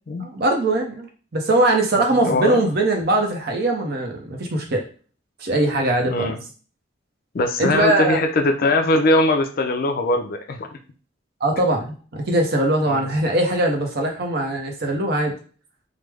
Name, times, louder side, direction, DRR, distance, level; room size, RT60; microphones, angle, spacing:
voice 1, 0.2-1.1 1.3-4.8 5.4-6.3 7.6-8.2 11.4-15.3, right 1 dB, 50° right, 3 dB, 0.6 m, -21 dB
voice 2, 2.0-2.6 6.1-6.4 7.3-10.7 12.9-13.1, left 2 dB, 50° left, 5 dB, 0.4 m, -21 dB
3.2 x 2.0 x 3.3 m, 0.39 s
head